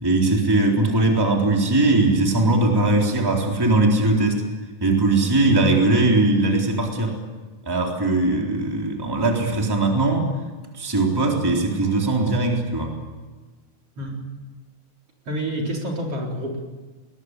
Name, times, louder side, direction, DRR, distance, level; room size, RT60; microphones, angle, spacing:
voice 1, 0.0-4.4 4.8-7.1 7.7-10.3 10.7-12.9, right 2 dB, 5° right, 0 dB, 3.5 m, -20 dB
voice 2, 15.3-16.6, equal, 50° right, -1 dB, 4.9 m, -28 dB
21.0 x 20.5 x 9.8 m, 1.3 s
omnidirectional pair, 3.5 m